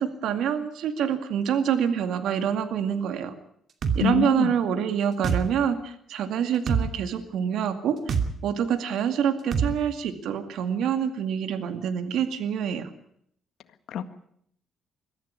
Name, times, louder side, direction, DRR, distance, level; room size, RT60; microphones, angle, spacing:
voice 1, 0.0-3.3 4.0-8.0 8.4-12.9, right 8 dB, 80° right, 9 dB, 2.1 m, -26 dB
sound 1, 3.8-4.0 5.2-5.4 6.7-6.9 8.1-8.3 9.5-9.7, right 6 dB, 55° right, 2.6 m, -24 dB
voice 2, 4.0-4.5 13.9-14.1, left 9 dB, 75° left, 11 dB, 1.8 m, -26 dB
22.5 x 14.5 x 9.8 m, 0.69 s
cardioid pair, 90°, 0 cm